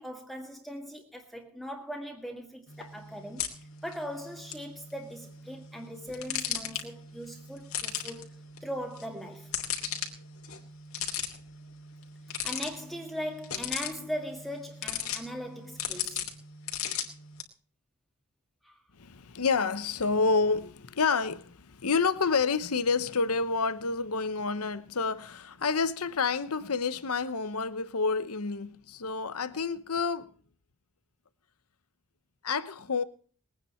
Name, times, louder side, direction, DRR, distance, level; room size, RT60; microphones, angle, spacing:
voice 1, 0.0-8.3 8.6-9.5 12.4-16.2 18.6-18.8, equal, ahead, 1.8 m, -39 dB
sound 1, 2.7-17.4, left 8 dB, 70° left, 2.9 m, -38 dB
voice 2, 19.0-30.3 32.4-33.0, left 4 dB, 85° left, 0.9 m, -29 dB
21.5 x 9.5 x 4.4 m
head